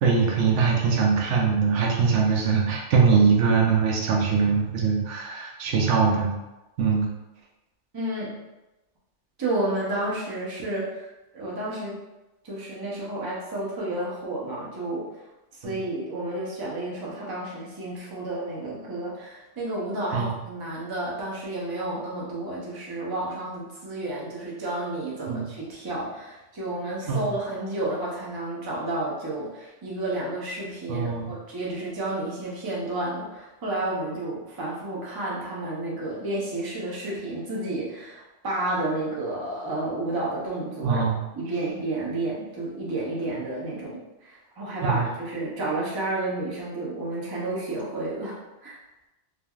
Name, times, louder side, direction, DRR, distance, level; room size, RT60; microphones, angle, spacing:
voice 1, 0.0-6.3 6.8-7.1 15.6-15.8 20.1-20.3 25.3-25.5 27.1-27.2 30.9-31.3 40.8-41.2 44.8-45.1, right 5 dB, 80° right, -1 dB, 0.9 m, -22 dB
voice 2, 7.9-8.4 9.4-12.0 12.4-15.1 15.5-41.0 41.3-48.8, right 2 dB, 25° right, -5 dB, 0.5 m, -31 dB
3.2 x 2.4 x 2.3 m, 1.0 s
omnidirectional pair, 1.2 m